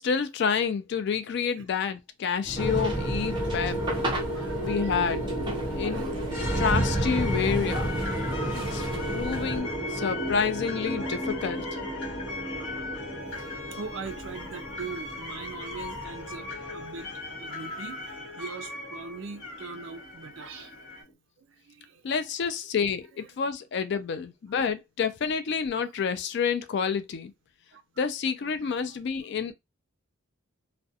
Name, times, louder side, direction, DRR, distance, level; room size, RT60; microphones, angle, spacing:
voice 1, 0.0-3.8 4.6-5.3 5.7-6.1 6.6-8.0 8.5-8.8 9.1-11.6 22.0-27.3 28.0-29.5, left 6 dB, 55° left, 0.3 m, -29 dB
sound 1, 2.5-9.6, right 1 dB, 25° right, 0.7 m, -35 dB
sound 2, 2.6-20.9, right 1 dB, 40° left, 1.0 m, -33 dB
voice 2, 4.3-5.0 5.7-6.4 13.3-13.5 13.7-21.0 21.4-22.0 23.3-23.4 24.5-24.6 27.7-27.8 28.6-29.0, right 4 dB, 65° right, 0.4 m, -42 dB
sound 3, 6.6-21.0, left 3 dB, 80° left, 1.0 m, -39 dB
2.4 x 2.1 x 2.6 m
head